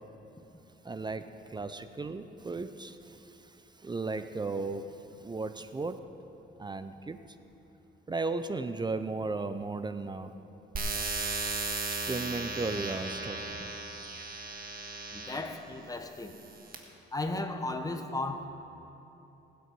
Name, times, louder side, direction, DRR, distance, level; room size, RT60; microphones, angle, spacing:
voice 1, 0.8-6.0 6.6-7.2 8.1-10.3 12.1-13.6, right 3 dB, 20° right, 10 dB, 0.5 m, -35 dB
sound 1, 10.8-15.5 16.2-16.8, right 3 dB, 50° right, 1.6 m, -36 dB
voice 2, 15.1-16.3 17.1-18.5, left 2 dB, 20° left, 6 dB, 1.1 m, -35 dB
20.0 x 8.3 x 4.6 m, 3.0 s
cardioid pair, 90°, 20 cm